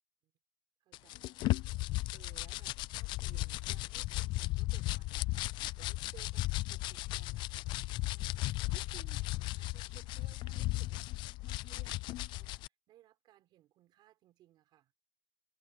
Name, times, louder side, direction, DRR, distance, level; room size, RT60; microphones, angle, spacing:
voice 1, 0.8-14.9, right 14 dB, 60° right, 6.5 m, -62 dB
sound 1, 0.9-12.7, left 19 dB, 70° left, 0.4 m, -36 dB
cardioid pair, 160°, 8 cm